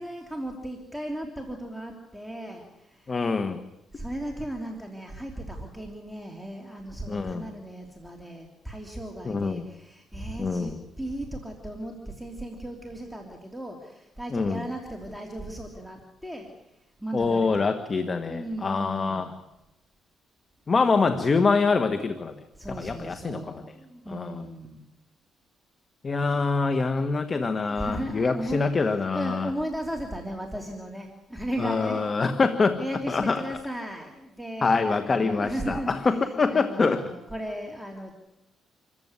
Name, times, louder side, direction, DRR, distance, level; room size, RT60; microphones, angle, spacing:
voice 1, 0.0-3.1 3.9-16.5 17.0-17.7 18.3-19.3 22.5-24.9 27.7-32.0 32.7-38.1, right 1 dB, ahead, 1 dB, 3.3 m, -36 dB
voice 2, 3.1-3.6 7.1-7.5 9.2-9.7 10.4-10.8 14.3-14.6 17.1-19.3 20.7-22.3 22.8-23.6 24.1-24.4 26.0-29.5 31.6-32.8 33.1-33.4 34.6-37.0, left 4 dB, 35° left, 9 dB, 1.5 m, -25 dB
27.5 x 15.0 x 9.8 m, 0.96 s
cardioid pair, 90°, 0 cm